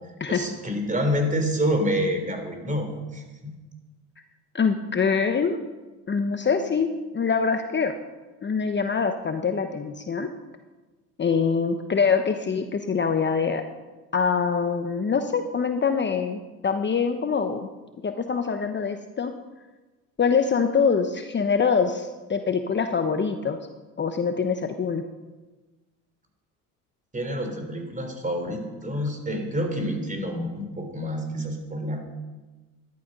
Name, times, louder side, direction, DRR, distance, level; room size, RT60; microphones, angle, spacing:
voice 1, 0.3-3.5 27.1-32.1, equal, 20° right, 5 dB, 3.7 m, -28 dB
voice 2, 4.5-5.6 6.1-7.9 8.4-10.3 11.2-13.6 14.1-17.7 18.0-19.3 20.2-23.6 24.0-25.0, left 5 dB, 30° left, 7 dB, 1.0 m, -24 dB
13.5 x 11.5 x 5.4 m, 1.2 s
supercardioid pair, 75°, 38 cm